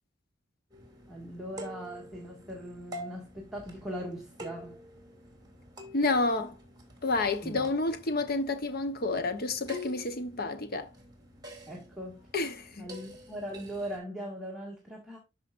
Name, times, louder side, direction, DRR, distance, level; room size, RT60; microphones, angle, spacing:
sound 1, 0.7-14.0, left 1 dB, 20° right, 2.7 m, -48 dB
voice 1, 1.1-4.8 7.4-7.8 11.7-12.3 12.8-15.2, equal, ahead, 2.0 m, -40 dB
voice 2, 5.9-6.6 7.0-10.9 12.3-12.8, left 3 dB, 50° left, 1.0 m, -29 dB
13.0 x 5.0 x 2.5 m
head